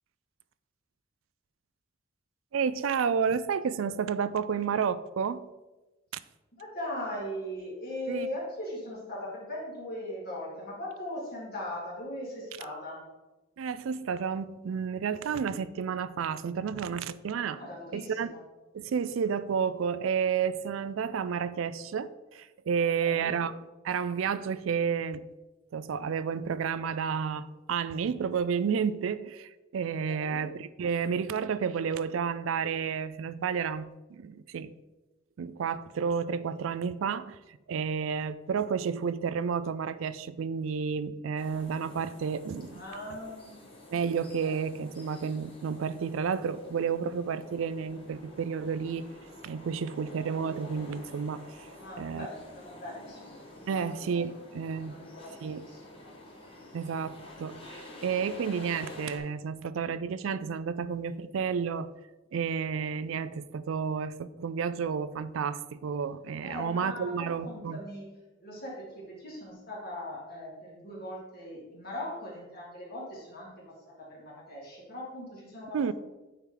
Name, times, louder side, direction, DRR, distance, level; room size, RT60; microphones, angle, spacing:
voice 1, 2.5-5.5 8.1-8.3 13.6-17.6 17.9-18.3 18.7-23.5 23.8-25.3 25.7-34.7 35.4-37.4 37.7-42.8 43.9-49.1 49.4-51.5 52.0-52.3 53.7-54.9 55.4-55.6 56.7-61.9 62.3-67.8 75.7-75.9, right 6 dB, 80° right, 15 dB, 0.4 m, -31 dB
voice 2, 6.6-13.0 17.5-18.4 23.0-23.3 30.0-30.5 42.7-43.6 44.4-44.5 51.8-53.4 53.7-53.9 54.8-56.1 66.4-68.1 68.4-75.9, left 1 dB, 50° left, -4 dB, 2.6 m, -40 dB
sound 1, 41.4-59.2, left 1 dB, 30° left, 1.4 m, -49 dB
9.0 x 4.4 x 3.9 m, 1.1 s
head